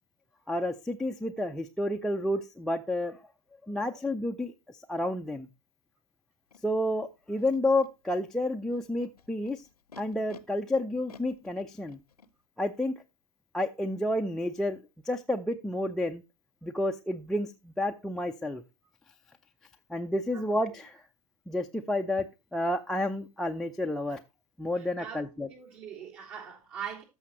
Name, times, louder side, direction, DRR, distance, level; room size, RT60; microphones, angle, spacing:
voice 1, 0.5-3.2 3.7-4.5 4.9-5.5 6.6-9.7 10.0-12.0 12.6-13.0 13.5-16.2 16.6-18.6 19.9-21.0 21.5-22.3 22.5-24.2 24.6-25.5, left 1 dB, ahead, 0.4 m, -30 dB
Animal, 6.5-6.6 7.4-7.9 8.7-10.4 11.1-12.3, left 5 dB, 80° left, 0.7 m, -52 dB
voice 2, 24.8-27.0, right 7 dB, 55° right, 3.5 m, -42 dB
13.5 x 5.6 x 3.0 m
figure-of-eight pair, 90°, 19 cm